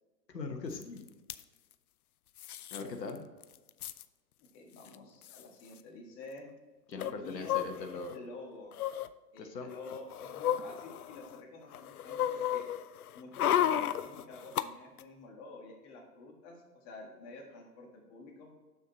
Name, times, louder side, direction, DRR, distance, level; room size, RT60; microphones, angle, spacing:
voice 1, 0.3-1.0 2.7-3.2 6.9-8.2 9.4-9.7, left 4 dB, 80° left, 5 dB, 1.3 m, -40 dB
sound 1, 0.8-0.9 1.1-1.4 2.4-2.8 3.2-3.3 3.4-4.0 4.9-5.0 5.2-5.4 7.0-8.1 8.7-9.1 9.7-11.4 11.7-14.6 15.0-15.1, left 11 dB, 60° left, 0.5 m, -33 dB
voice 2, 4.5-6.5 7.0-8.8 9.3-12.7 13.1-18.5, left 3 dB, 30° left, 1 dB, 1.7 m, -49 dB
7.0 x 6.4 x 4.0 m, 1.3 s
figure-of-eight pair, 120°, 49 cm